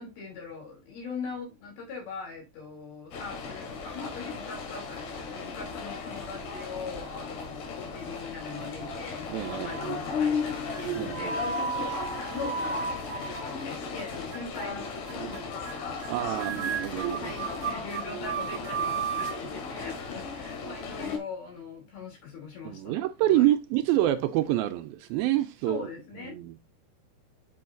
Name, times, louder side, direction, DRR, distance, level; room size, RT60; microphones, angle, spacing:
voice 1, 0.0-23.5 25.7-26.4, left 4 dB, 70° left, 5.0 m, -41 dB
sound 1, 3.1-21.2, left 4 dB, 90° left, 3.8 m, -36 dB
sound 2, 8.5-9.1 9.4-10.0 10.7-14.0 14.3-14.7 15.1-15.4 15.6-15.7 16.0-16.1 16.4-19.4, right 6 dB, 55° right, 1.7 m, -34 dB
voice 2, 9.3-9.8 10.9-11.4 16.1-17.3 22.6-25.9 26.2-26.6, right 14 dB, 80° right, 2.3 m, -27 dB
7.6 x 6.3 x 2.6 m
omnidirectional pair, 4.5 m